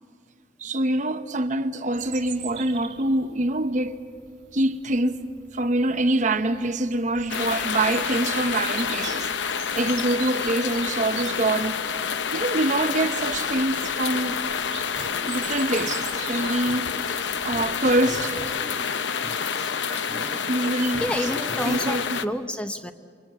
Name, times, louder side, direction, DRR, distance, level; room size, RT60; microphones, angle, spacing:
voice 1, 0.6-4.0 4.5-5.2 5.5-11.8 12.3-14.4 15.3-16.9 17.4-18.4 20.5-21.0 21.6-22.2, right 2 dB, 45° right, 1.0 m, -25 dB
Bird vocalization bird call bird song, 1.9-18.4, right 9 dB, 75° right, 3.1 m, -43 dB
sound 1, 7.3-22.2, left 6 dB, 90° left, 0.7 m, -28 dB
sound 2, 15.0-15.3 15.8-17.2 17.5-18.7 19.2-21.8, left 1 dB, 25° left, 4.3 m, -38 dB
voice 2, 21.0-22.9, left 1 dB, 5° left, 0.7 m, -29 dB
29.0 x 24.5 x 7.5 m
head